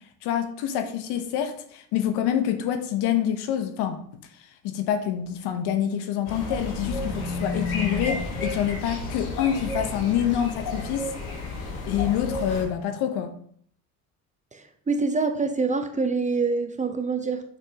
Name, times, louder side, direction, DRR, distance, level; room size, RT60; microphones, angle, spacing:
voice 1, 0.2-4.0 4.6-11.1 11.9-13.3, left 10 dB, 60° left, 1.0 m, -26 dB
sound 1, 6.3-12.6, left 2 dB, 75° left, 2.2 m, -31 dB
voice 2, 14.5-17.4, right 4 dB, 15° right, 0.7 m, -26 dB
7.0 x 5.9 x 2.9 m
hypercardioid pair, 80°, 43 cm